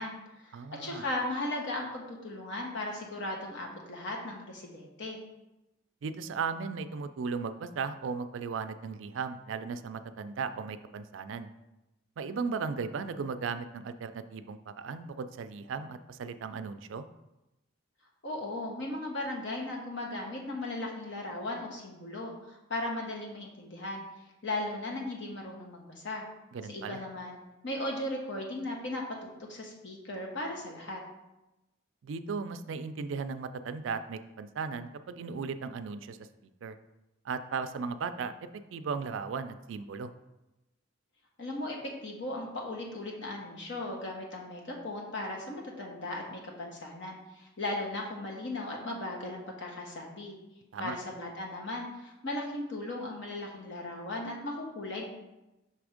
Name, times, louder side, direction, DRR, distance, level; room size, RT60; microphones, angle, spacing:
voice 1, 0.0-5.2 18.2-24.0 24.4-26.2 26.7-29.0 29.4-31.0 41.4-50.3 50.8-55.0, left 2 dB, 65° left, 0 dB, 1.2 m, -37 dB
voice 2, 0.5-1.1 6.0-11.5 12.2-17.0 26.5-27.0 32.0-36.2 36.6-36.8 37.2-38.3 38.7-40.1 50.7-51.0, right 5 dB, 70° right, 11 dB, 0.4 m, -36 dB
5.6 x 3.4 x 5.0 m, 0.97 s
head